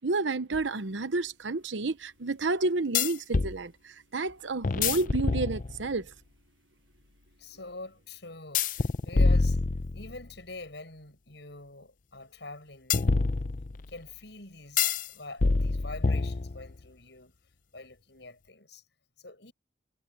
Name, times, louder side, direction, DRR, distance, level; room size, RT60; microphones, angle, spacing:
voice 1, 0.0-6.1, right 3 dB, 80° right, 0.9 m, -30 dB
sound 1, 0.5-0.6 2.9-3.6 4.6-5.9 8.5-10.2 12.9-13.9 14.8-15.1 15.4-16.8, left 4 dB, 45° left, 0.6 m, -26 dB
voice 2, 7.4-13.4 13.9-17.3 17.7-18.8 19.2-19.5, left 2 dB, 70° left, 6.8 m, -45 dB
head